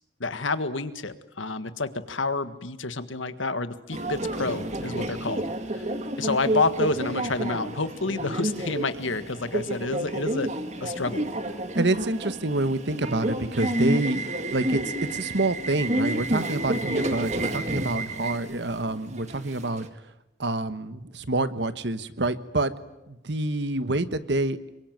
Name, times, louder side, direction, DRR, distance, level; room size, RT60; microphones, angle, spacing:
voice 1, 0.2-5.5 6.2-10.5 10.8-11.3, left 3 dB, 85° left, 11 dB, 1.6 m, -29 dB
Subway metro underground, 3.9-19.9, right 1 dB, 35° right, 2.1 m, -30 dB
voice 2, 11.7-14.8 15.1-19.9 20.4-22.7 23.1-24.6, right 2 dB, 65° right, 13 dB, 1.3 m, -27 dB
27.0 x 23.5 x 9.3 m, 0.92 s
head